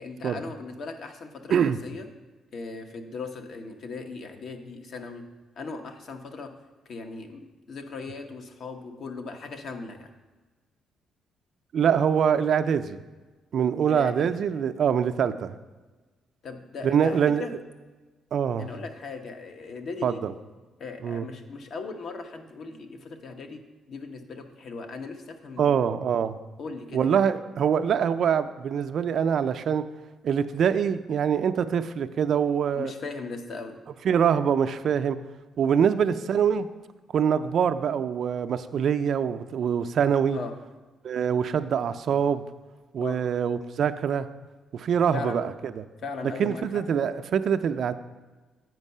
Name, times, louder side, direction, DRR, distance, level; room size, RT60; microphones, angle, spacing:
voice 1, 0.0-2.1 2.5-5.2 5.6-6.5 6.9-10.1 13.9-14.3 16.4-17.5 18.6-20.2 20.8-23.6 23.9-25.8 26.6-27.2 32.7-33.8 35.7-35.9 40.3-40.5 43.0-43.2 45.1-45.4 46.0-46.8, left 4 dB, 60° left, 5 dB, 0.9 m, -38 dB
voice 2, 11.7-13.0 13.5-15.5 16.8-17.4 18.3-18.7 20.0-20.3 21.0-21.3 25.6-26.4 26.9-29.8 30.2-32.9 34.0-35.2 35.6-36.7 37.1-40.4 41.0-42.4 42.9-44.3 44.7-45.8 46.4-47.9, right 7 dB, 60° right, 10 dB, 0.4 m, -24 dB
8.0 x 4.6 x 5.4 m, 1.3 s
cardioid pair, 90°, 0 cm